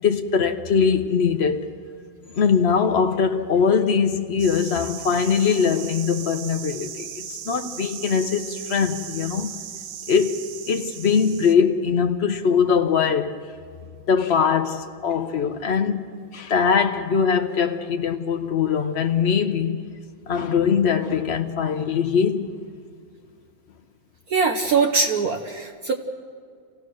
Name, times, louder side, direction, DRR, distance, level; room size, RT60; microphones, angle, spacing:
voice 1, 0.0-1.7 2.3-9.5 10.1-10.4 10.7-13.4 14.1-19.8 20.3-22.5, left 6 dB, 60° left, 0.6 m, -21 dB
sound 1, 4.4-11.6, right 9 dB, 85° right, 1.7 m, -37 dB
voice 2, 24.3-25.9, right 4 dB, 55° right, 1.2 m, -22 dB
28.5 x 16.5 x 6.3 m
omnidirectional pair, 2.2 m